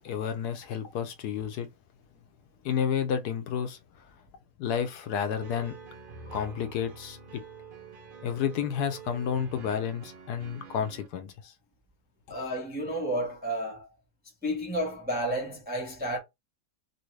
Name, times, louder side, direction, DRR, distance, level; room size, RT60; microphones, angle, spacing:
voice 1, 0.0-1.7 2.6-3.8 4.6-5.8 6.3-7.4 8.2-11.5, left 8 dB, 75° left, 1.1 m, -31 dB
sound 1, 5.3-11.1, right 4 dB, 70° right, 0.5 m, -47 dB
voice 2, 12.3-13.9 14.4-16.2, right 1 dB, 10° right, 0.5 m, -31 dB
3.0 x 2.7 x 3.1 m
omnidirectional pair, 1.8 m